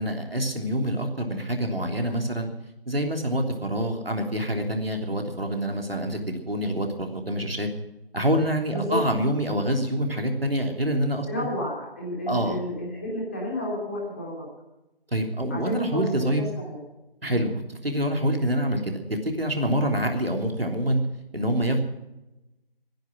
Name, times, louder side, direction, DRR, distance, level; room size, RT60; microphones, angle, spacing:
voice 1, 0.0-2.5 2.9-7.7 8.1-11.5 12.3-12.6 15.1-16.4 17.2-21.0 21.3-21.8, equal, 75° right, 3 dB, 3.4 m, -26 dB
voice 2, 11.3-14.4 15.5-16.8, left 1 dB, 15° left, -4 dB, 3.2 m, -31 dB
21.5 x 10.5 x 6.2 m, 0.97 s
figure-of-eight pair, 165°, 30 cm